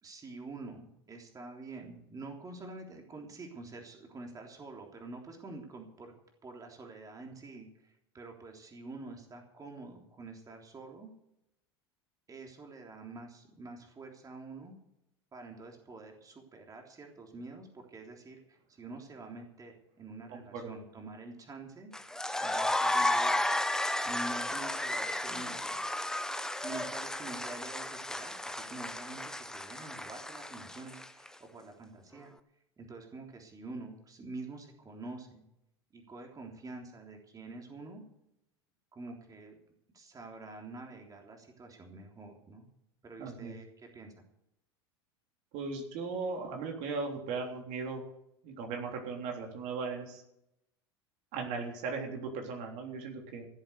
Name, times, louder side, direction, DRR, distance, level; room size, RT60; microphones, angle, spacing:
voice 1, 0.0-6.1 6.4-11.1 12.3-14.8 15.3-21.9 22.4-23.4 24.1-25.7 26.6-32.3 32.8-35.5 35.9-38.0 38.9-39.6 39.9-42.7 43.0-44.2, right 3 dB, 25° right, 2 dB, 3.5 m, -47 dB
voice 2, 20.3-20.7 43.2-43.6 45.5-48.0 48.4-50.2 51.3-53.5, right 4 dB, 60° right, 2 dB, 3.6 m, -37 dB
sound 1, 21.9-31.3, left 1 dB, 5° left, 1.0 m, -33 dB
16.5 x 8.0 x 8.1 m, 0.81 s
hypercardioid pair, 80°, 14 cm